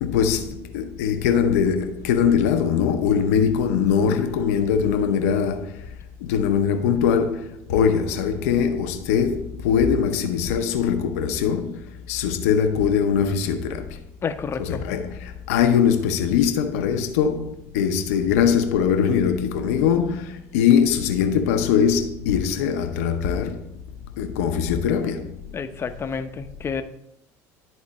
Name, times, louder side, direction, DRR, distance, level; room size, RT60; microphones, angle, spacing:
voice 1, 0.0-5.8 6.2-11.8 12.1-14.0 14.6-23.6 24.2-25.3, left 7 dB, 85° left, 0.7 m, -21 dB
voice 2, 14.2-14.8 25.5-26.8, left 5 dB, 30° left, 0.7 m, -29 dB
11.0 x 4.0 x 4.2 m
supercardioid pair, 95°, 8 cm